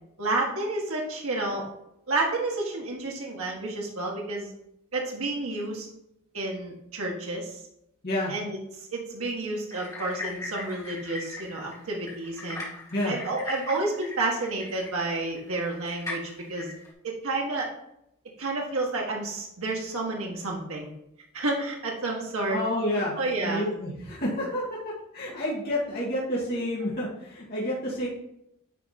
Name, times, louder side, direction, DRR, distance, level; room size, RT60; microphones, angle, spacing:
voice 1, 0.2-1.6 2.1-4.5 4.9-5.9 6.3-7.6 8.3-12.6 13.0-16.7 17.0-17.7 18.4-20.9 21.3-22.6 23.2-23.7, right 2 dB, 75° right, -1 dB, 1.5 m, -30 dB
sound 1, 9.7-16.9, left 2 dB, 15° left, 2.0 m, -39 dB
voice 2, 22.5-28.1, left 1 dB, 45° left, -7 dB, 2.3 m, -29 dB
9.8 x 3.6 x 4.2 m, 0.80 s
head